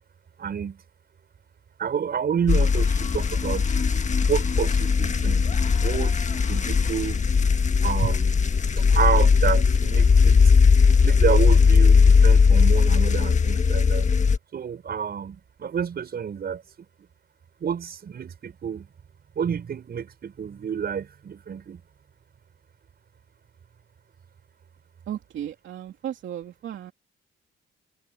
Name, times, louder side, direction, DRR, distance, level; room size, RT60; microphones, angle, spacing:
voice 1, 0.4-0.8 1.8-3.9 4.3-5.5 5.7-7.2 7.8-8.4 8.8-10.5 11.0-14.1 14.5-16.6 17.6-18.9 19.3-21.8, right 7 dB, 50° right, 6.4 m, -29 dB
sound 1, 2.5-14.4, left 5 dB, 35° left, 1.6 m, -19 dB
voice 2, 25.1-26.9, right 10 dB, 70° right, 2.8 m, -35 dB
cardioid pair, 90°, 20 cm